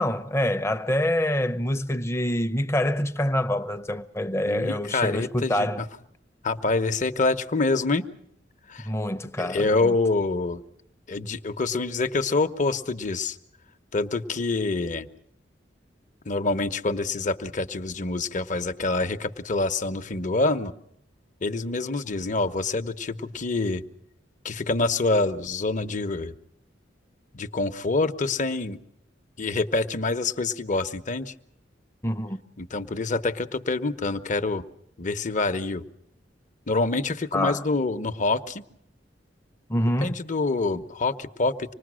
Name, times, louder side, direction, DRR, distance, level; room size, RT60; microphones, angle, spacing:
voice 1, 0.0-5.8 8.8-9.9 32.0-32.4 37.3-37.7 39.7-40.1, left 1 dB, 15° left, 0.8 m, -26 dB
voice 2, 4.5-5.7 6.4-8.1 8.7-8.9 9.4-10.6 11.1-13.4 13.9-15.1 16.3-20.7 21.4-23.8 24.4-26.3 27.3-28.8 29.4-31.3 32.6-34.6 35.0-35.8 36.7-38.6 40.0-41.7, left 3 dB, 45° left, 0.9 m, -26 dB
26.0 x 20.0 x 6.3 m
head